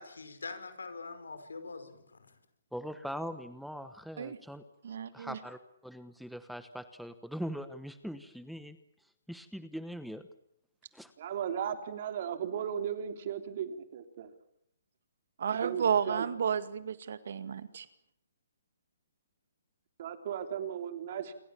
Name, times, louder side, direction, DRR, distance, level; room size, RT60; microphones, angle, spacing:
voice 1, 0.0-2.3, left 4 dB, 85° left, 9 dB, 5.3 m, -44 dB
voice 2, 2.7-4.6 5.1-8.8 9.0-10.3 10.9-11.1, equal, ahead, 11 dB, 1.1 m, -41 dB
voice 3, 4.8-5.4 15.4-17.9, right 7 dB, 65° right, 12 dB, 2.1 m, -32 dB
voice 4, 11.2-14.4 15.5-16.3 20.0-21.3, right 8 dB, 50° right, 7 dB, 3.3 m, -36 dB
28.0 x 24.0 x 7.3 m, 0.77 s
hypercardioid pair, 145°, 0 cm